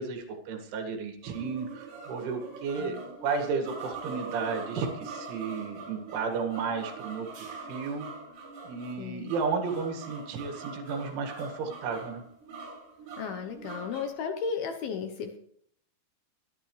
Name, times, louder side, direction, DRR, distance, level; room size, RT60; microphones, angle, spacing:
voice 1, 0.0-8.1 8.6-12.2, right 5 dB, 90° right, 4 dB, 4.4 m, -33 dB
sound 1, 1.2-14.1, right 4 dB, 60° right, 7.8 m, -43 dB
voice 2, 9.0-9.3 13.2-15.4, left 6 dB, 75° left, 6 dB, 2.4 m, -34 dB
22.5 x 11.0 x 3.2 m, 0.64 s
omnidirectional pair, 5.3 m